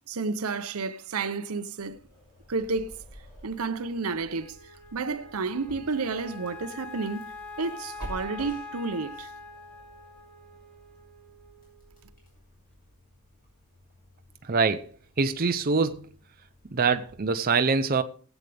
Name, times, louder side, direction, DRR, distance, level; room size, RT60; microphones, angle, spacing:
voice 1, 0.1-2.0 2.5-2.9 3.4-4.6 4.9-7.3 7.6-9.3, right 4 dB, 80° right, 0.8 m, -31 dB
sound 1, 1.8-17.2, equal, 40° left, 6.5 m, -51 dB
Wind instrument woodwind instrument, 3.8-12.2, left 3 dB, 5° left, 1.2 m, -45 dB
voice 2, 14.5-14.9 15.2-16.1 16.7-18.0, right 4 dB, 40° right, 0.6 m, -24 dB
20.0 x 8.2 x 3.4 m
head